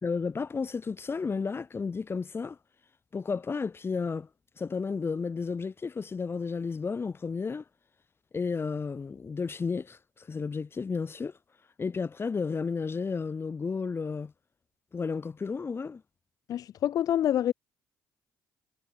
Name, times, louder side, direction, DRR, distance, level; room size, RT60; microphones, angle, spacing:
voice 1, 0.0-2.6 3.1-4.3 4.6-7.6 8.3-11.3 11.8-14.3 14.9-16.0, left 5 dB, 30° left, 1.2 m, -32 dB
voice 2, 16.5-17.5, left 11 dB, 55° left, 0.7 m, -26 dB
figure-of-eight pair, 45°, 7 cm